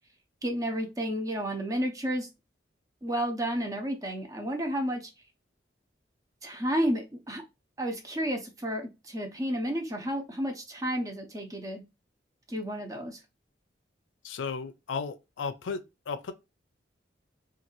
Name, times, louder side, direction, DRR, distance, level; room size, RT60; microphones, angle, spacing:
voice 1, 0.4-2.3 3.0-5.1 6.4-7.4 7.8-11.8 12.5-13.2, equal, 20° right, 0.5 m, -31 dB
voice 2, 14.2-16.3, left 5 dB, 85° left, 0.4 m, -35 dB
2.6 x 2.3 x 2.9 m
head